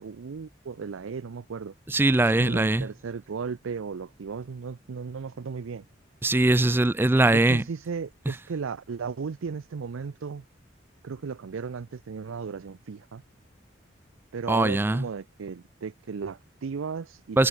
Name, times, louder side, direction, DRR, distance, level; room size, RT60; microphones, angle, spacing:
voice 1, 0.0-1.7 2.4-5.8 7.3-10.4 11.0-13.2 14.3-17.5, right 5 dB, 85° right, 0.5 m, -35 dB
voice 2, 1.9-2.9 6.2-7.6 14.5-15.1 17.4-17.5, right 2 dB, 10° right, 0.3 m, -21 dB
head